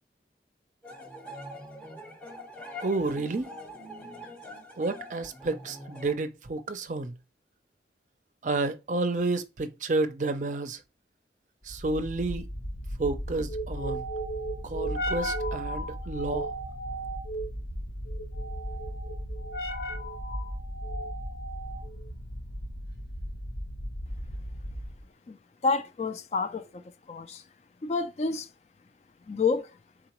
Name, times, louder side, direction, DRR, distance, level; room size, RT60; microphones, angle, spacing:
sound 1, 0.8-6.1, left 1 dB, 5° left, 0.7 m, -44 dB
voice 1, 2.8-3.5 4.8-7.1 8.4-10.8 11.6-12.4 13.0-14.0 14.6-16.5, right 3 dB, 45° right, 0.5 m, -30 dB
sound 2, 11.7-25.0, right 1 dB, 60° left, 0.8 m, -35 dB
voice 2, 25.3-26.8 27.1-27.4 27.8-28.5 29.3-29.8, left 4 dB, 35° left, 0.3 m, -29 dB
3.9 x 3.8 x 2.9 m
head